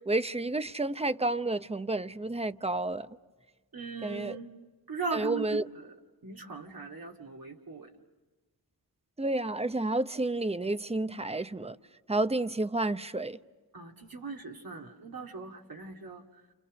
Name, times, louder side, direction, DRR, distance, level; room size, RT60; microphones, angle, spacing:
voice 1, 0.1-3.1 4.0-4.4 5.1-5.6 9.2-11.7 12.1-13.4, right 2 dB, 15° right, 0.8 m, -30 dB
voice 2, 3.7-4.5 4.9-5.9 6.2-7.9 13.7-16.4, right 5 dB, 75° right, 2.4 m, -39 dB
30.0 x 29.0 x 6.4 m
wide cardioid pair, 85°, 36 cm